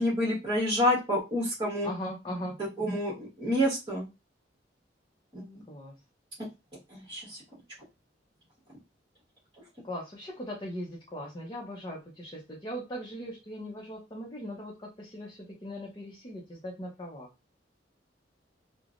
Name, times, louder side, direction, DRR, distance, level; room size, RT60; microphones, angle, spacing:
voice 1, 0.0-1.9 2.8-4.1 5.3-5.6 6.9-7.4, left 1 dB, 25° right, -6 dB, 1.3 m, -28 dB
voice 2, 1.8-2.6 5.7-5.9 9.8-17.3, equal, 25° left, -2 dB, 0.7 m, -39 dB
3.2 x 2.1 x 2.5 m, 0.24 s
head